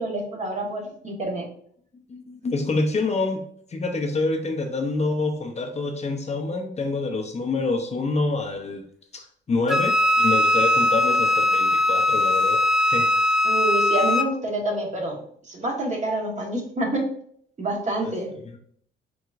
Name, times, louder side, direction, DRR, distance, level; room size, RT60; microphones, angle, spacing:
voice 1, 0.0-1.4 13.4-15.1 15.5-17.1 17.6-18.3, right 2 dB, 35° right, 0 dB, 1.3 m, -27 dB
voice 2, 2.1-3.4 3.7-8.8 9.1-13.1 18.0-18.1 18.4-18.6, left 3 dB, 35° left, 2 dB, 0.7 m, -27 dB
Wind instrument woodwind instrument, 9.7-14.3, left 1 dB, ahead, 0.4 m, -20 dB
4.7 x 3.9 x 2.5 m, 0.63 s
cardioid pair, 90°, 20 cm